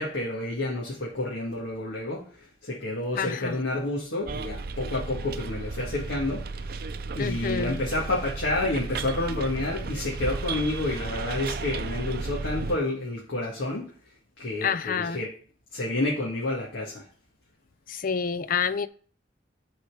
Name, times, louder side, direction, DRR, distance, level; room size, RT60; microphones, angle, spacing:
voice 1, 0.0-6.8 7.2-13.9 14.4-15.3 15.7-17.1, left 2 dB, 80° left, 1.9 m, -29 dB
voice 2, 3.2-3.6 7.2-7.8 14.6-15.2 17.9-18.9, left 6 dB, 50° left, 0.5 m, -28 dB
Bus, 4.3-12.8, right 4 dB, 55° right, 0.5 m, -34 dB
9.7 x 4.3 x 4.9 m
head